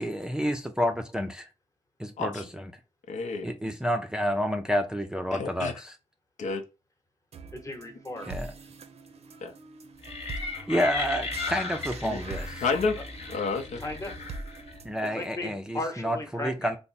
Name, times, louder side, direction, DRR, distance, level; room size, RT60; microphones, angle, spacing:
voice 1, 0.0-1.5 2.0-2.7 3.4-6.0 8.3-8.5 10.7-12.6 14.8-16.8, equal, 5° right, 0.4 m, -29 dB
voice 2, 3.1-3.5 5.3-5.7 6.4-6.6 9.4-9.5 12.0-12.2 12.6-13.0 13.3-13.8, left 4 dB, 85° left, 0.6 m, -29 dB
sound 1, 7.3-15.3, right 3 dB, 60° right, 0.6 m, -44 dB
voice 3, 7.5-8.3 13.0-13.1 13.8-14.2 15.1-16.7, left 2 dB, 25° left, 0.9 m, -36 dB
sound 2, 10.0-14.8, left 3 dB, 60° left, 1.0 m, -36 dB
3.4 x 2.1 x 4.0 m
wide cardioid pair, 135°, 12 cm